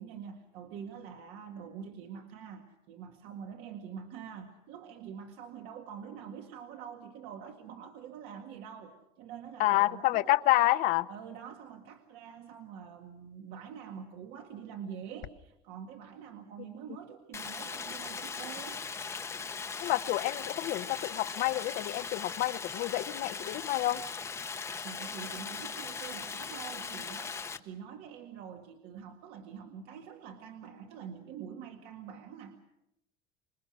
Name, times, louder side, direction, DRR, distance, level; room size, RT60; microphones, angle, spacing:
voice 1, 0.0-10.3 11.1-18.8 24.8-32.6, right 8 dB, 65° right, 3 dB, 2.0 m, -45 dB
voice 2, 9.6-11.1 19.8-24.0, left 17 dB, 50° left, 13 dB, 0.9 m, -28 dB
Stream, 17.3-27.6, left 5 dB, 15° left, 0.9 m, -39 dB
26.5 x 21.5 x 6.3 m, 0.86 s
cardioid pair, 170°, 18 cm